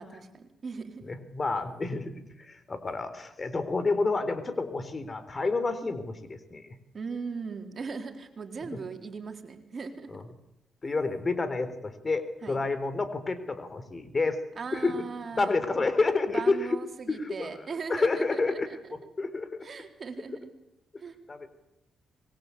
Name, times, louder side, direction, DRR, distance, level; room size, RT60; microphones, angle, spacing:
voice 1, 0.0-1.1 6.9-10.1 12.4-12.6 14.6-15.9 16.3-18.8 19.6-20.5 21.0-21.1, right 5 dB, 50° right, 5 dB, 4.1 m, -39 dB
voice 2, 1.1-6.6 8.7-8.8 10.1-10.2 10.8-14.4 14.7-14.9 15.3-16.8 17.1-17.5 17.9-19.7 21.3-21.5, left 3 dB, 35° left, 12 dB, 3.9 m, -29 dB
25.5 x 22.5 x 8.6 m, 0.86 s
cardioid pair, 65°, 0 cm